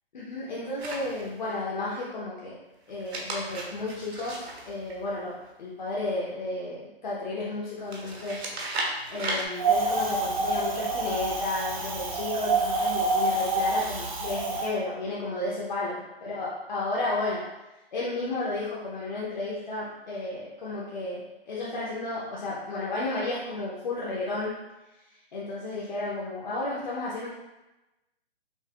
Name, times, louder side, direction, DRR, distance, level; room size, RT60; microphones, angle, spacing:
voice 1, 0.1-2.6 2.9-8.4 9.1-17.4 17.9-24.5 25.3-27.3, left 2 dB, 45° left, -6 dB, 0.7 m, -32 dB
sound 1, 0.8-1.5 2.9-5.5 7.9-9.5, right 2 dB, 80° right, 1.0 m, -35 dB
Wind, 9.6-14.7, right 3 dB, 35° right, 0.4 m, -27 dB
5.5 x 2.4 x 2.3 m, 1.0 s
hypercardioid pair, 160°, 32 cm